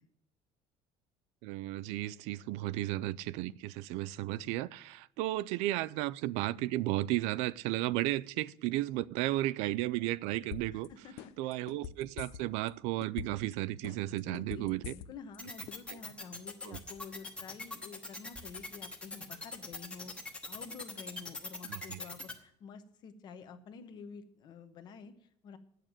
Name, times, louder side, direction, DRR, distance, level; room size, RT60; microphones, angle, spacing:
voice 1, 1.4-10.9 11.4-14.9 16.6-16.8 21.6-22.0, right 16 dB, 70° right, 0.4 m, -34 dB
sound 1, 10.5-10.9 11.2-12.7 13.0-13.5 13.8-15.4 15.7-15.8, left 9 dB, 60° left, 0.6 m, -42 dB
voice 2, 10.7-11.5 14.1-25.6, left 5 dB, 35° left, 1.0 m, -50 dB
sound 2, 15.4-22.3, left 3 dB, 10° left, 1.1 m, -42 dB
10.5 x 6.6 x 8.9 m
cardioid pair, 170°, 12 cm